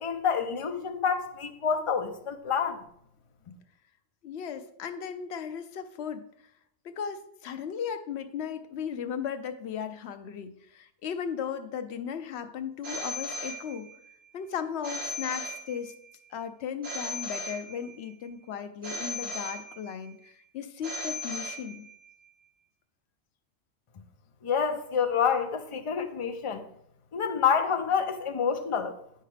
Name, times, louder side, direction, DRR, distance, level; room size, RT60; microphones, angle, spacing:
voice 1, 0.0-2.8 24.4-26.6 27.1-28.9, left 6 dB, 40° left, 0.5 m, -28 dB
voice 2, 4.2-6.3 6.8-13.9 14.3-15.9 16.3-21.8, left 7 dB, 75° left, 0.9 m, -36 dB
Telephone, 12.8-14.1 14.8-16.1 16.8-18.1 18.8-20.1 20.8-22.1, left 1 dB, 50° right, 1.7 m, -37 dB
8.5 x 5.6 x 3.3 m
omnidirectional pair, 1.1 m